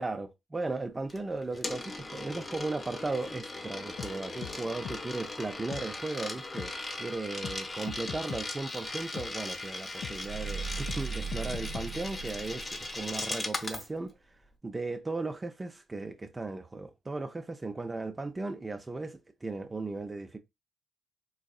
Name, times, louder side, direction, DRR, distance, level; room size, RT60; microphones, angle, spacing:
voice 1, 0.0-14.1 14.6-20.4, right 3 dB, 20° right, 0.3 m, -36 dB
Coin (dropping), 1.1-13.9, left 2 dB, 25° left, 0.7 m, -39 dB
sound 1, 4.0-4.1 4.4-4.6 4.8-5.0 5.7-5.8 6.6-6.7 7.4-7.6 7.9-8.4 9.2-9.3 10.0-10.2 10.9-11.0 11.3-11.9, left 8 dB, 60° left, 0.3 m, -39 dB
sound 2, 10.1-13.4, right 5 dB, 85° right, 0.6 m, -39 dB
3.9 x 2.6 x 2.3 m
cardioid pair, 90°, 0 cm